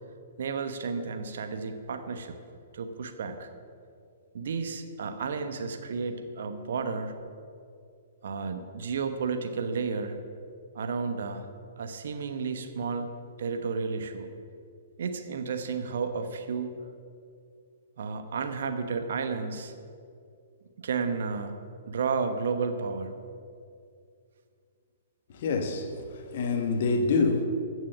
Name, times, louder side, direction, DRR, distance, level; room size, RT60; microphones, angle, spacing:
voice 1, 0.4-2.4 2.7-3.5 4.3-7.2 8.2-10.2 10.7-11.5 11.8-13.1 13.4-14.3 15.0-16.7 18.0-19.7 20.8-21.5 21.9-23.2, right 5 dB, 60° right, 1.1 m, -32 dB
voice 2, 25.3-27.4, left 4 dB, 50° left, 1.5 m, -27 dB
15.0 x 6.2 x 7.2 m
figure-of-eight pair, 115°, 0 cm